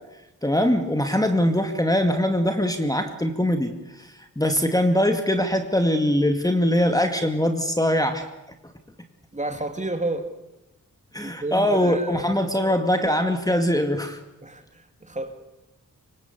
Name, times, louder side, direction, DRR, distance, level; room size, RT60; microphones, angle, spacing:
voice 1, 0.4-3.7 4.0-8.3 11.1-14.2, equal, 10° left, 6 dB, 2.3 m, -22 dB
voice 2, 9.3-10.3 11.2-12.2 14.4-15.3, right 2 dB, 20° right, 7 dB, 3.1 m, -30 dB
25.0 x 24.0 x 8.3 m, 0.98 s
cardioid pair, 75°, 33 cm